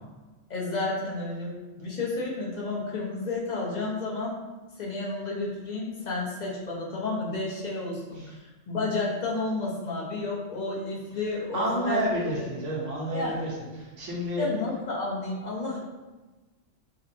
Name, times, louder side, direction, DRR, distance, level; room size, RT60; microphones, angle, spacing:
voice 1, 0.5-4.4 4.8-8.4 8.7-12.0 12.4-12.5 13.1-13.4 14.4-15.8, left 3 dB, 40° left, -4 dB, 0.8 m, -31 dB
voice 2, 11.5-14.5, right 1 dB, 75° right, -5 dB, 1.3 m, -30 dB
5.1 x 2.1 x 2.6 m, 1.2 s
omnidirectional pair, 1.3 m